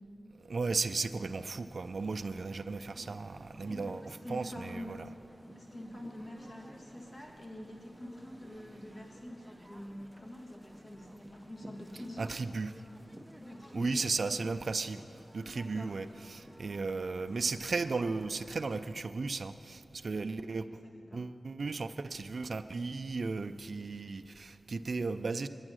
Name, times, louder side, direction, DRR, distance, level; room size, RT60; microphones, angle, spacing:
voice 1, 0.5-5.0 12.2-12.7 13.7-15.0 15.3-20.7 21.1-25.5, right 4 dB, 65° right, 9 dB, 0.3 m, -35 dB
sound 1, 0.8-18.9, equal, 5° right, 0.6 m, -54 dB
voice 2, 3.7-5.0 5.6-12.3 13.4-14.3 15.4-16.0 20.5-21.3, left 1 dB, 45° left, -1 dB, 1.6 m, -46 dB
9.8 x 9.6 x 6.2 m, 2.6 s
cardioid pair, 55°, 0 cm